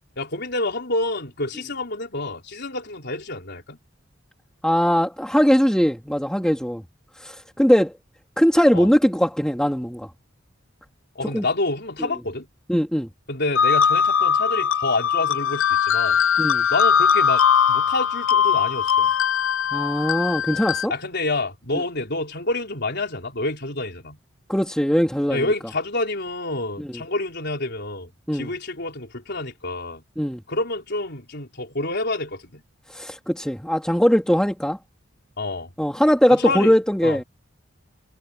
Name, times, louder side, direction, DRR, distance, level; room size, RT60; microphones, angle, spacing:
voice 1, 0.2-3.8 8.7-8.9 11.1-12.5 13.3-16.2 16.7-19.1 20.5-20.6 20.9-24.2 25.3-30.0 30.5-32.6 35.4-35.7 36.3-36.7 37.0-37.2, left 2 dB, 60° left, 4.5 m, -28 dB
voice 2, 4.6-6.8 7.2-7.9 8.4-10.1 11.3-11.4 12.0-12.1 12.7-13.1 16.4-16.7 19.7-20.9 21.7-21.8 24.5-25.5 26.8-27.0 28.3-28.5 30.2-30.4 32.9-34.8 35.8-37.2, equal, 5° left, 2.6 m, -20 dB
sound 1, 13.6-20.9, left 7 dB, 85° left, 0.7 m, -20 dB
head